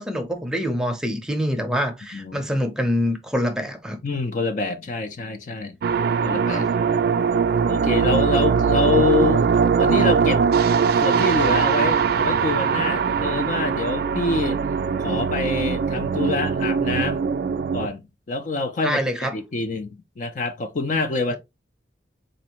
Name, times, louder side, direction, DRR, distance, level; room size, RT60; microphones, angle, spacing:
voice 1, 0.0-4.0 6.5-6.7 18.8-19.3 21.3-21.4, equal, 5° right, 0.6 m, -25 dB
voice 2, 2.1-2.5 4.0-5.8 6.2-6.7 7.7-9.5 9.8-10.4 10.9-14.6 15.0-17.2 17.7-19.0 19.3-19.9 20.2-21.4, left 3 dB, 45° left, 0.5 m, -26 dB
sound 1, 5.8-17.9, right 6 dB, 60° right, 0.3 m, -21 dB
4.1 x 2.6 x 2.9 m
head